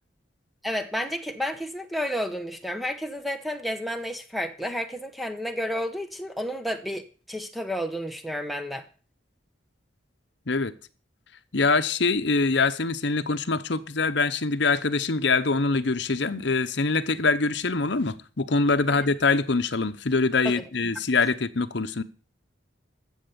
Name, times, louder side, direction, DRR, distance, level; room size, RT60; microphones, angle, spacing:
voice 1, 0.6-8.8 18.9-19.1 20.4-20.6, equal, ahead, 1.0 m, -31 dB
voice 2, 11.5-22.0, left 3 dB, 65° left, 0.9 m, -24 dB
13.5 x 7.3 x 6.9 m
head